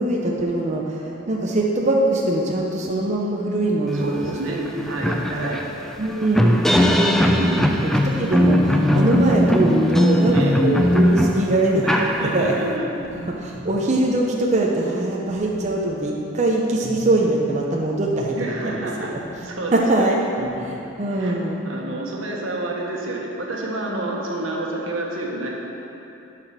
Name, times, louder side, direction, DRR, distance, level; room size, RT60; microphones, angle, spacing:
voice 1, 0.0-5.5 6.0-11.8 12.3-12.5 13.4-18.4 18.6-18.9 19.7-20.2 21.0-21.8, right 1 dB, 35° right, -2 dB, 0.7 m, -22 dB
voice 2, 3.9-5.6 7.3-7.8 10.3-10.6 11.8-13.1 18.4-19.1 19.4-20.1 20.3-20.7 21.1-21.4 21.6-25.5, right 2 dB, 80° right, -2 dB, 1.3 m, -29 dB
sound 1, 4.2-4.3 4.7-12.7, equal, ahead, 0.4 m, -19 dB
sound 2, 10.8-11.5 13.0-13.8 15.3-15.9 16.8-17.1 19.1-19.4 20.4-20.6, right 1 dB, 15° right, 1.4 m, -39 dB
10.5 x 4.9 x 5.9 m, 2.9 s
head